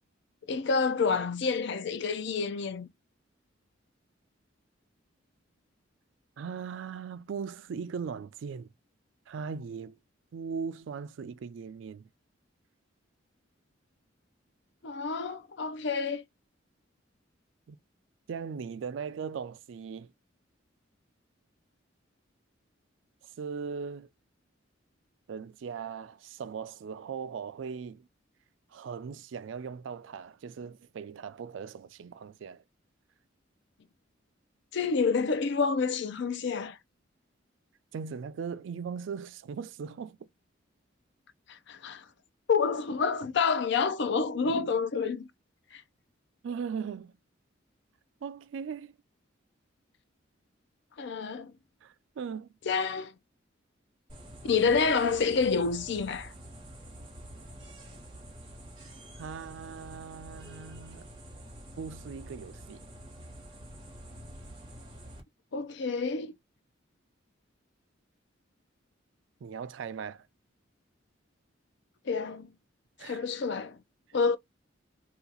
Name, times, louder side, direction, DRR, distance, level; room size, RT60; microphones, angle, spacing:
voice 1, 0.5-2.9 14.8-16.2 34.7-36.8 41.5-42.0 42.5-45.3 45.7-45.8 51.0-51.5 52.7-53.1 54.4-56.3 65.5-66.3 72.1-72.5 73.0-73.8 74.1-74.4, left 5 dB, 60° left, 0.5 m, -28 dB
voice 2, 6.4-8.7 9.3-10.0 10.3-12.1 17.7-17.8 18.3-20.1 23.4-24.1 25.3-28.1 28.7-32.6 37.9-40.3 46.4-47.1 48.2-48.9 51.8-52.5 59.2-61.1 61.8-62.9 69.4-70.3 73.0-73.2, right 6 dB, 70° right, 0.3 m, -39 dB
sound 1, 54.1-65.2, right 1 dB, 25° right, 1.3 m, -47 dB
2.8 x 2.3 x 3.8 m
head